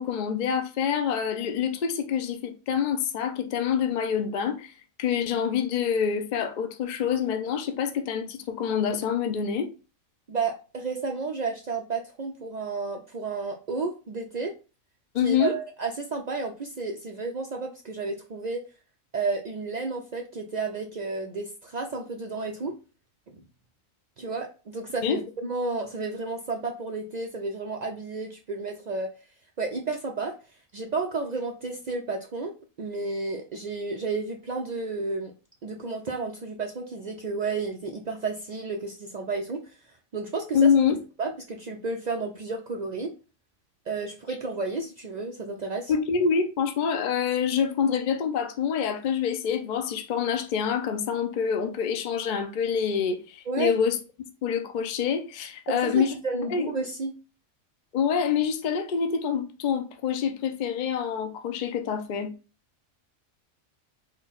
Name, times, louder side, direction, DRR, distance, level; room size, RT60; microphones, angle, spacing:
voice 1, 0.0-9.7 15.1-15.5 25.0-25.2 40.5-41.0 45.9-54.0 54.4-56.1 56.5-56.7 57.9-62.3, left 7 dB, 55° left, 0.5 m, -26 dB
voice 2, 10.3-14.5 15.2-18.6 19.1-22.8 23.3-23.4 24.2-29.1 29.6-30.3 30.7-35.3 35.6-39.8 40.1-40.7 41.2-43.1 43.9-45.9 53.5-53.7 55.7-57.2, right 3 dB, 85° right, 0.3 m, -32 dB
4.3 x 2.2 x 4.0 m
omnidirectional pair, 1.4 m